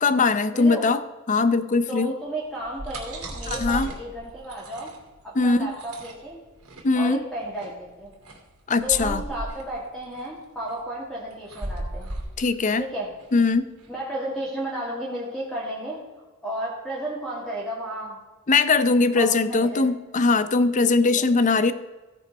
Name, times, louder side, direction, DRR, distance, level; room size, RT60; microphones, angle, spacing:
voice 1, 0.0-2.1 3.5-3.9 5.4-5.7 6.8-7.2 8.7-9.2 12.4-12.8 13.3-13.7 18.5-21.7, left 3 dB, 35° left, 13 dB, 0.6 m, -21 dB
voice 2, 0.5-0.9 1.9-4.9 5.2-6.4 6.9-8.1 8.8-12.1 12.8-13.1 13.9-16.0 16.4-18.2 19.1-19.9 21.0-21.3, right 1 dB, ahead, -6 dB, 2.1 m, -33 dB
sound 1, 2.5-13.9, right 1 dB, 85° right, 2.7 m, -37 dB
16.0 x 5.7 x 5.3 m, 1.2 s
head